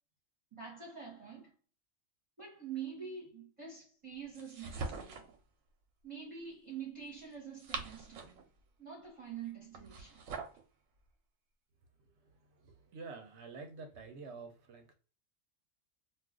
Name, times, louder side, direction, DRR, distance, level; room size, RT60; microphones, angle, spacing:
voice 1, 0.5-1.5 2.4-5.2 6.0-8.5 8.8-10.2, right 7 dB, 25° right, 0.9 m, -46 dB
sound 1, 4.3-5.4 7.3-8.5 9.7-10.6, right 4 dB, 90° right, 1.0 m, -43 dB
voice 2, 12.2-14.9, right 4 dB, 65° right, 0.8 m, -49 dB
2.4 x 2.4 x 3.5 m
omnidirectional pair, 1.3 m